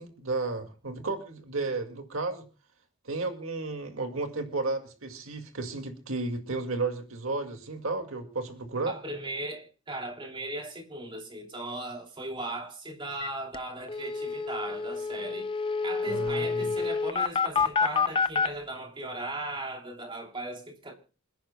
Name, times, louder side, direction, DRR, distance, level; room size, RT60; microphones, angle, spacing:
voice 1, 0.0-2.4 3.0-9.0 16.1-16.6, right 3 dB, 75° right, 2.0 m, -33 dB
voice 2, 8.9-15.5 15.8-20.9, right 1 dB, 25° right, 2.9 m, -37 dB
sound 1, 13.2-13.3 13.5-13.6 13.9-18.5, left 5 dB, 25° left, 0.5 m, -28 dB
27.5 x 10.5 x 2.2 m
head